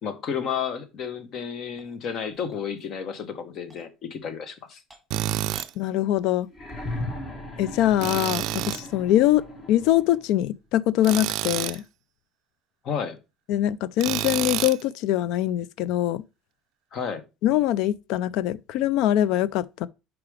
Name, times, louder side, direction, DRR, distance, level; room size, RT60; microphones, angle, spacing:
voice 1, 0.0-4.8 12.8-13.2 16.9-17.2, left 7 dB, 50° left, 1.0 m, -32 dB
sound 1, 1.7-3.0 3.6-3.9 4.5-4.6 4.9-5.2 5.5-5.7 6.1-6.6, right 1 dB, ahead, 1.9 m, -50 dB
Tools, 5.1-5.7 8.0-8.9 11.0-11.8 14.0-14.8, right 15 dB, 65° right, 0.3 m, -28 dB
voice 2, 5.8-6.5 7.6-11.8 13.5-16.2 17.4-19.9, left 13 dB, 70° left, 0.3 m, -23 dB
sound 2, 6.5-10.3 11.5-11.6, left 1 dB, 30° left, 1.5 m, -37 dB
4.9 x 4.8 x 4.8 m
cardioid pair, 130°, 0 cm